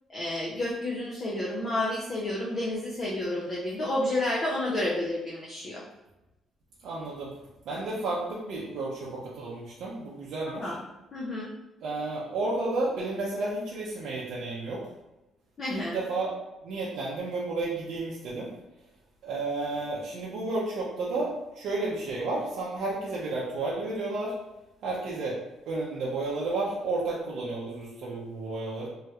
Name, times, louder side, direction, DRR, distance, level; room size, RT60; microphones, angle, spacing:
voice 1, 0.1-5.8 10.5-10.8 11.1-11.5 15.6-16.0, left 1 dB, 30° left, -4 dB, 0.4 m, -30 dB
voice 2, 6.8-7.3 7.7-10.7 11.8-14.8 15.7-16.3 16.6-18.5 19.2-24.4 24.8-25.4 25.7-28.9, right 2 dB, 60° right, -6 dB, 0.6 m, -32 dB
3.1 x 2.9 x 2.3 m, 0.99 s
cardioid pair, 175°, 0 cm